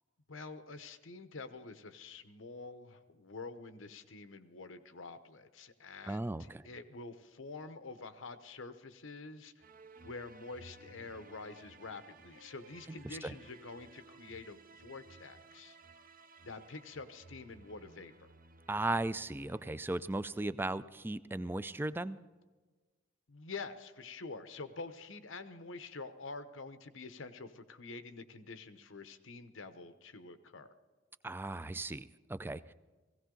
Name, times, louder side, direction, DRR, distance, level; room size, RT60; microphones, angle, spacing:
voice 1, 0.3-9.5 10.0-15.8 16.4-18.3 23.3-30.7, left 3 dB, 90° left, 10 dB, 1.0 m, -47 dB
voice 2, 6.1-6.7 12.9-13.0 13.2-13.3 18.7-22.2 31.2-32.7, right 2 dB, 10° right, 15 dB, 0.3 m, -37 dB
sound 1, 9.6-21.0, right 3 dB, 45° right, 0.7 m, -58 dB
17.5 x 17.0 x 3.9 m, 1.3 s
head